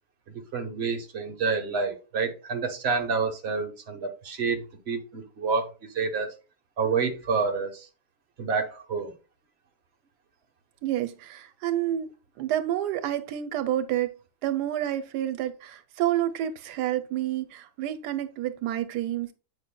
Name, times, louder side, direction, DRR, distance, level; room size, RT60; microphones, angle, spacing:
voice 1, 0.5-6.3 6.8-7.9 8.4-9.1, right 5 dB, 45° right, 1.3 m, -28 dB
voice 2, 10.8-14.1 14.4-19.3, right 12 dB, 90° right, 1.2 m, -29 dB
8.7 x 5.4 x 2.2 m
omnidirectional pair, 1.7 m